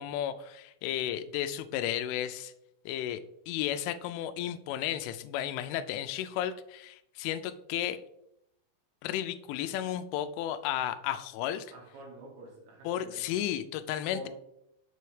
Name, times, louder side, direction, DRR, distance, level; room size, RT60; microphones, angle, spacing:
voice 1, 0.0-2.5 2.9-3.2 3.5-8.0 9.0-11.7 12.9-14.3, left 11 dB, 85° left, 9 dB, 3.0 m, -33 dB
voice 2, 11.7-13.3 14.1-14.3, right 1 dB, 70° right, -2 dB, 3.8 m, -47 dB
7.6 x 6.6 x 3.2 m, 0.81 s
omnidirectional pair, 5.7 m